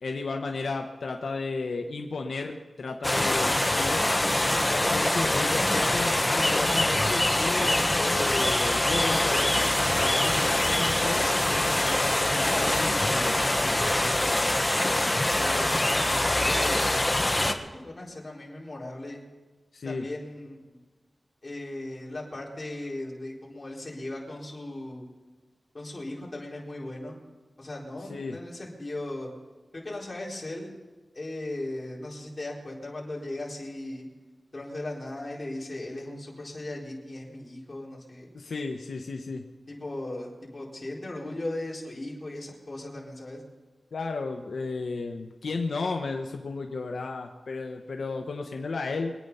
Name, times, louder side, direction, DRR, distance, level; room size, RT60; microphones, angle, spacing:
voice 1, 0.0-4.0 4.6-9.7 10.0-13.4 13.6-14.6 19.7-20.1 28.1-28.4 38.3-39.4 43.9-49.1, left 3 dB, 85° left, 3 dB, 1.0 m, -34 dB
sound 1, 3.0-17.5, left 1 dB, 15° left, 1.1 m, -24 dB
voice 2, 15.3-15.7 16.2-16.9 17.6-19.3 19.8-20.8 21.4-25.1 25.7-27.2 27.6-29.3 29.7-30.7 31.1-34.0 34.5-38.3 39.7-43.4, left 1 dB, 35° left, -4 dB, 4.4 m, -37 dB
24.0 x 9.2 x 5.6 m, 1.3 s
wide cardioid pair, 100°, 0 cm